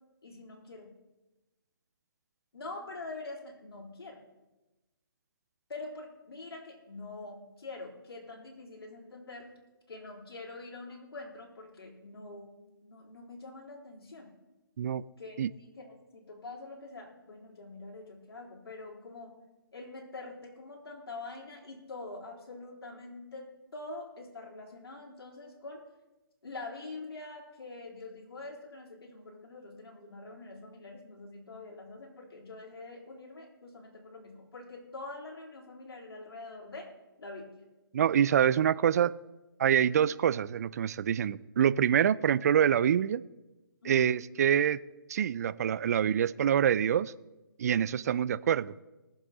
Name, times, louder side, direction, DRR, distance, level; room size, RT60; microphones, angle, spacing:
voice 1, 0.2-0.9 2.5-4.2 5.7-9.5 9.9-14.3 15.2-19.3 19.7-25.8 26.4-36.9 37.2-37.6 43.8-44.1, left 3 dB, 85° left, -2 dB, 3.9 m, -45 dB
voice 2, 37.9-39.1 39.6-43.2 43.9-44.8 45.1-47.1 47.6-48.7, right 9 dB, 45° right, 19 dB, 0.3 m, -26 dB
20.0 x 7.3 x 3.9 m, 1.1 s
hypercardioid pair, 155°, 12 cm